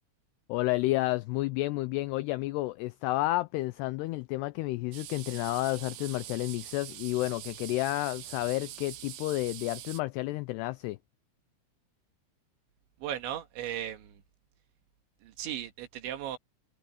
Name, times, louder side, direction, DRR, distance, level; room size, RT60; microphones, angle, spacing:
voice 1, 0.5-11.0, left 19 dB, 80° left, 2.5 m, -31 dB
sound 1, 4.9-10.0, right 13 dB, 70° right, 2.5 m, -44 dB
voice 2, 13.0-14.2 15.2-16.4, right 11 dB, 85° right, 4.2 m, -36 dB
omnidirectional pair, 5.2 m